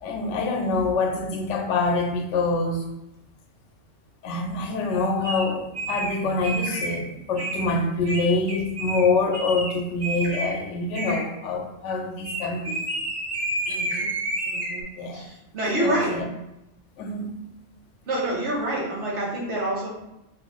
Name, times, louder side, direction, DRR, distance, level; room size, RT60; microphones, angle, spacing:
voice 1, 0.0-2.9 4.2-12.9 15.0-15.3 15.6-16.3 17.0-17.3, left 3 dB, 85° left, 4 dB, 0.9 m, -25 dB
sound 1, 5.2-5.4 5.7-6.1 6.4-7.0 7.4-7.7 8.0-9.0 9.3-9.7 10.0-10.5 10.9-11.2 12.2-14.8, right 1 dB, 40° right, 0.9 m, -30 dB
voice 2, 13.7-14.1 14.5-14.8 15.1-16.1 18.1-19.9, right 1 dB, 75° right, -5 dB, 1.3 m, -27 dB
3.5 x 2.6 x 3.0 m, 0.89 s
omnidirectional pair, 1.2 m